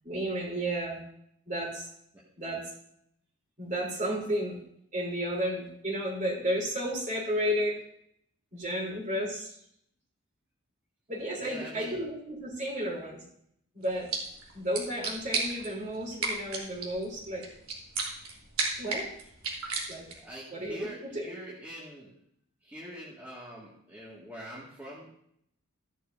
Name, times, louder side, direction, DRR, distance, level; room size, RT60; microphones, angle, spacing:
voice 1, 0.0-1.0 1.5-1.9 2.4-2.6 3.6-4.6 4.9-7.8 8.5-9.5 11.1-13.2 13.7-14.1 14.5-17.5 18.8-19.1 19.9-20.1 20.5-20.9 21.1-21.3, equal, 35° right, -2 dB, 3.5 m, -32 dB
voice 2, 11.4-11.9 20.1-22.1 22.6-25.1, right 1 dB, 10° right, -7 dB, 1.9 m, -44 dB
sound 1, 13.8-20.3, right 4 dB, 75° right, 3.1 m, -35 dB
15.0 x 11.0 x 2.7 m, 0.71 s
head